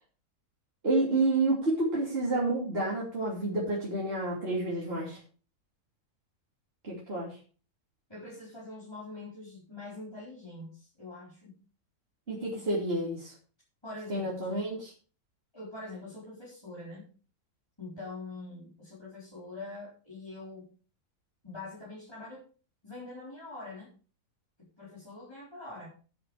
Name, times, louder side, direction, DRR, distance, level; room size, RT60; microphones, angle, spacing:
voice 1, 0.8-5.2 6.8-7.4 12.3-13.4 14.1-14.9, right 2 dB, 35° right, -5 dB, 3.3 m, -29 dB
voice 2, 8.1-11.6 13.8-14.6 15.5-17.1 17.8-20.7 21.4-22.4 22.8-23.9 24.6-25.9, left 2 dB, 15° left, -7 dB, 4.6 m, -44 dB
10.5 x 10.0 x 4.9 m, 0.38 s
omnidirectional pair, 1.7 m